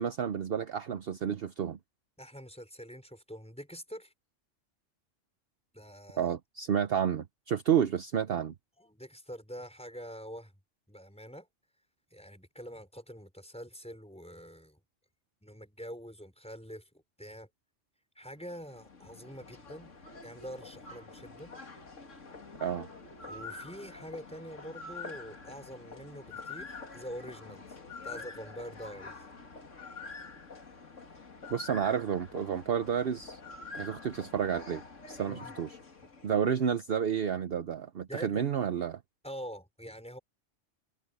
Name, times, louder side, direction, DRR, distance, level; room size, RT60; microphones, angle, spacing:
voice 1, 0.0-1.8 6.2-8.5 22.6-22.9 31.5-33.4 33.7-34.8 35.1-35.8 36.2-39.0, right 8 dB, 55° right, 0.9 m, -30 dB
voice 2, 2.2-4.1 5.7-6.3 8.8-10.5 10.9-11.5 12.1-14.8 15.4-16.8 17.2-17.5 18.1-19.9 20.2-21.5 23.3-27.8 28.0-29.2 35.3-35.5 38.1-38.4 39.2-40.2, equal, 5° left, 5.1 m, -45 dB
sound 1, 18.4-36.8, left 4 dB, 80° left, 2.7 m, -47 dB
omnidirectional pair, 1.3 m